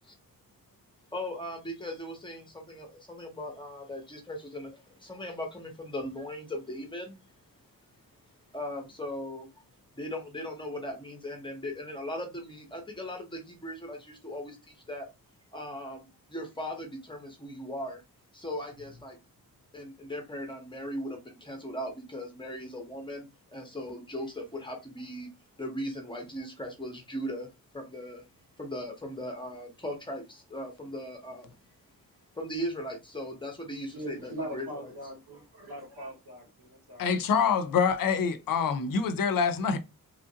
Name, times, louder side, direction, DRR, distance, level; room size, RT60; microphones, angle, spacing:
voice 1, 1.1-7.2 8.5-9.5 9.9-15.1 15.5-18.0 18.3-19.2 19.7-25.3 25.6-28.2 28.6-31.5 32.3-34.9, equal, 15° left, 0.7 m, -38 dB
voice 2, 33.9-37.2, right 1 dB, 85° right, 1.9 m, -41 dB
voice 3, 37.0-39.8, left 6 dB, 65° left, 0.5 m, -26 dB
3.1 x 2.4 x 2.7 m
wide cardioid pair, 170°, 36 cm